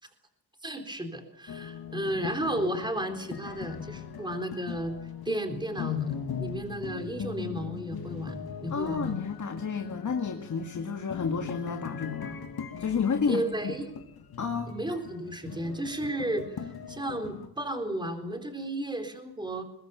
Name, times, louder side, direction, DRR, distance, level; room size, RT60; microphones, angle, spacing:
voice 1, 0.6-5.0 5.3-9.2 13.3-13.9 14.7-19.6, right 1 dB, 10° right, 6 dB, 3.9 m, -33 dB
sound 1, 1.5-17.5, left 7 dB, 65° left, 2.6 m, -40 dB
voice 2, 8.7-12.4 12.8-13.7 14.4-14.7, left 6 dB, 50° left, 4 dB, 2.2 m, -31 dB
22.5 x 21.0 x 7.1 m, 0.86 s
wide cardioid pair, 115°, 39 cm